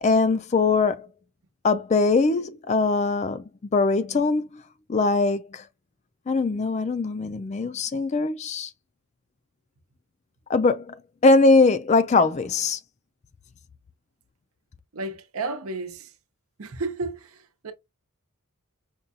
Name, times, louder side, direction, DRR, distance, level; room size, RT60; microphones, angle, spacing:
voice 1, 0.0-1.1 1.6-3.4 3.7-4.6 4.9-5.6 6.3-8.7 10.5-11.0 11.2-12.8, left 3 dB, 30° left, 0.3 m, -21 dB
voice 2, 14.9-16.1 16.6-17.7, right 3 dB, 80° right, 0.8 m, -32 dB
5.1 x 2.3 x 2.7 m
head